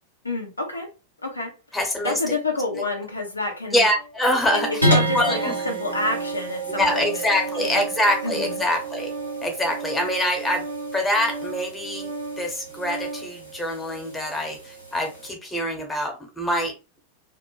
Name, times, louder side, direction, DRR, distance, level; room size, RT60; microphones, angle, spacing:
voice 1, 0.2-0.9 1.2-1.5 2.0-3.9 4.5-7.3 7.6-7.9 8.2-8.6, left 2 dB, 80° left, 0.5 m, -28 dB
voice 2, 1.7-2.3 3.7-4.8 5.1-5.5 6.8-9.1 9.4-10.7 10.9-12.1 12.4-16.7, left 1 dB, 10° left, 0.8 m, -24 dB
Organ, 3.9-13.3, right 2 dB, 55° right, 0.4 m, -36 dB
sound 1, 4.8-15.3, right 2 dB, 90° right, 0.7 m, -30 dB
2.2 x 2.0 x 3.0 m
figure-of-eight pair, 90°, 0 cm